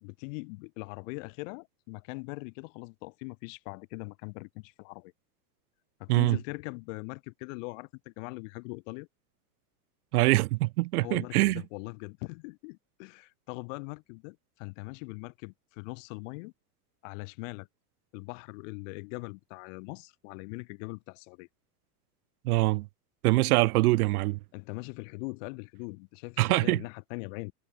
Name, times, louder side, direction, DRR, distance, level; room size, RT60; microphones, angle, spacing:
voice 1, 0.0-5.1 6.0-9.1 11.0-16.5 17.0-17.7 18.1-21.5 24.5-27.5, left 30 dB, 55° left, 2.7 m, -41 dB
voice 2, 10.1-11.6 22.4-22.9 23.2-24.4 26.4-26.8, right 20 dB, 70° right, 1.0 m, -24 dB
supercardioid pair, 160°, 46 cm